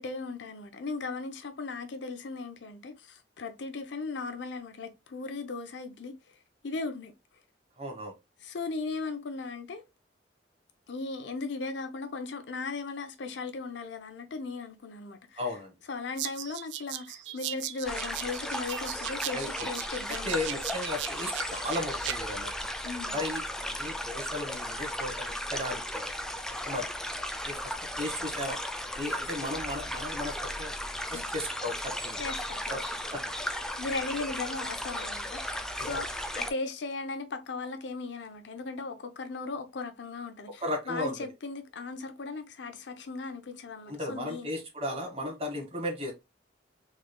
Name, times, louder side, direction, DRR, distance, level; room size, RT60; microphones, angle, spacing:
voice 1, 0.0-6.2 6.6-7.1 8.4-9.8 10.9-15.4 15.9-20.4 22.8-23.2 31.1-31.3 32.2-33.0 33.8-44.5, left 3 dB, 70° left, 0.6 m, -37 dB
voice 2, 7.8-8.1 15.4-15.7 19.3-19.7 20.2-22.5 23.1-26.1 26.5-27.0 27.4-28.6 29.0-30.7 31.1-32.2 32.7-32.8 33.1-33.3 35.8-36.0 40.6-41.1 43.9-46.1, left 1 dB, 35° right, 1.2 m, -35 dB
sound 1, 16.2-22.2, right 13 dB, 70° right, 0.4 m, -38 dB
sound 2, 17.9-36.5, left 1 dB, 5° left, 0.3 m, -35 dB
3.7 x 3.2 x 2.2 m
head